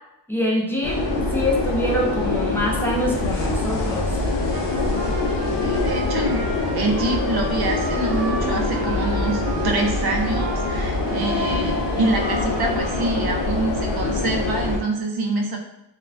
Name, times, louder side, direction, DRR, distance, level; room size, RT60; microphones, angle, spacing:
voice 1, 0.3-1.0 1.3-4.1, equal, 5° left, -4 dB, 0.5 m, -24 dB
sound 1, 0.8-14.8, left 2 dB, 70° left, 0.6 m, -24 dB
Trumpet, 4.5-11.8, right 2 dB, 35° right, 0.9 m, -35 dB
voice 2, 5.6-15.6, right 2 dB, 55° right, 2 dB, 0.6 m, -26 dB
2.3 x 2.3 x 3.3 m, 0.90 s
wide cardioid pair, 105°, 44 cm